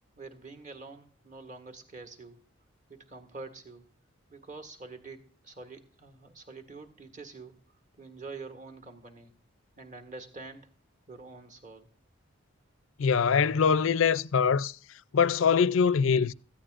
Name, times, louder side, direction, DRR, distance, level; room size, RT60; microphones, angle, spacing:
voice 1, 0.2-2.4 2.9-3.9 4.3-7.6 8.0-9.3 9.8-10.7 11.1-11.9, right 3 dB, 35° right, 1.7 m, -46 dB
voice 2, 13.0-14.8 15.1-16.3, left 6 dB, 70° left, 0.4 m, -23 dB
18.0 x 14.5 x 2.5 m
head